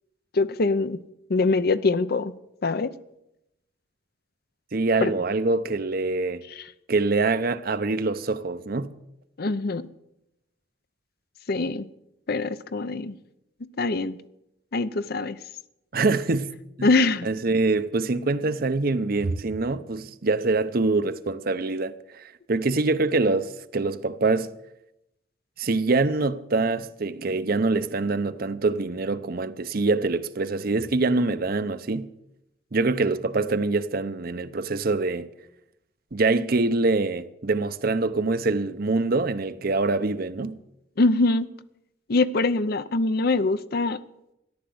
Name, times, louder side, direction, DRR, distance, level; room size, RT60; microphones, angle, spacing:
voice 1, 0.3-1.0 1.3-2.3 2.6-2.9 5.0-5.1 6.6-6.7 9.4-9.9 11.5-11.9 12.3-13.1 13.8-14.2 14.7-15.4 16.8-17.3 41.0-41.5 42.1-44.0, left 3 dB, 55° left, 0.7 m, -23 dB
voice 2, 4.7-6.4 6.9-8.9 15.9-16.5 16.8-16.9 17.2-24.5 25.6-32.1 32.7-35.3 36.1-40.6, right 3 dB, 55° right, 0.7 m, -24 dB
14.0 x 11.0 x 7.8 m
head